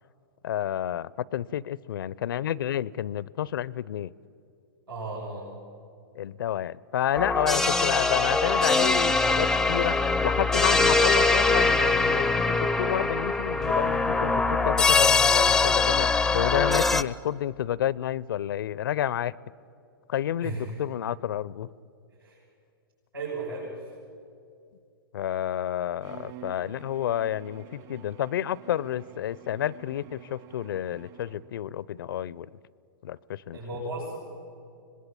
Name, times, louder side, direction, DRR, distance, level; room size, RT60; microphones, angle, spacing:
voice 1, 0.4-4.1 6.2-10.0 10.2-16.1 16.3-19.3 20.1-21.7 25.1-32.5 33.0-33.6, left 11 dB, 65° left, 23 dB, 0.5 m, -30 dB
voice 2, 4.9-5.5 20.4-20.8 22.2-22.4 23.1-23.9 33.5-34.2, right 2 dB, 80° right, -5 dB, 6.9 m, -35 dB
sound 1, 7.1-17.0, left 3 dB, 5° left, 0.6 m, -22 dB
Bowed string instrument, 26.0-31.6, right 8 dB, 45° right, 2.7 m, -48 dB
25.5 x 20.5 x 8.7 m, 2.5 s
hypercardioid pair, 115°, 12 cm